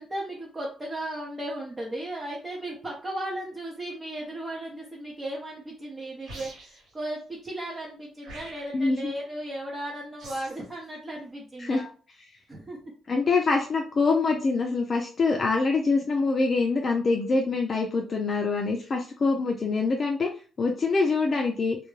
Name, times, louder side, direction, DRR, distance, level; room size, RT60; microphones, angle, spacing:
voice 1, 0.0-11.9 12.5-12.8, right 1 dB, 25° right, -3 dB, 0.7 m, -36 dB
sound 1, 6.2-6.9 8.2-8.9 10.2-10.7, right 2 dB, 80° right, 1.2 m, -44 dB
voice 2, 8.7-9.1 11.6-11.8 13.1-20.3 20.6-21.8, left 3 dB, 40° left, 1 dB, 0.4 m, -25 dB
2.3 x 2.2 x 3.1 m, 0.38 s
cardioid pair, 90°, 0 cm